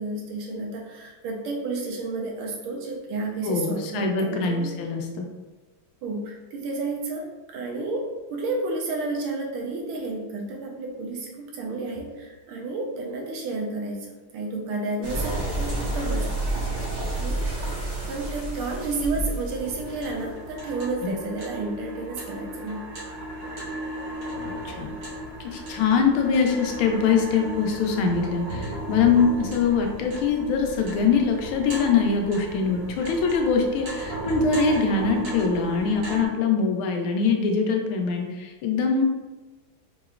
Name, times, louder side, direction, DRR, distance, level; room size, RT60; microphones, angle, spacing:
voice 1, 0.0-4.7 6.0-14.1 14.3-16.3 17.1-17.4 18.1-22.9, right 3 dB, 80° right, 0 dB, 1.5 m, -31 dB
voice 2, 3.4-5.3 21.0-21.1 24.4-24.9 25.4-39.0, left 5 dB, 80° left, 3 dB, 1.4 m, -23 dB
sound 1, 15.0-20.5, right 1 dB, 50° right, 1.7 m, -29 dB
sound 2, 19.5-36.3, right 1 dB, 65° right, 1.5 m, -35 dB
4.8 x 3.0 x 2.4 m, 1.2 s
omnidirectional pair, 2.4 m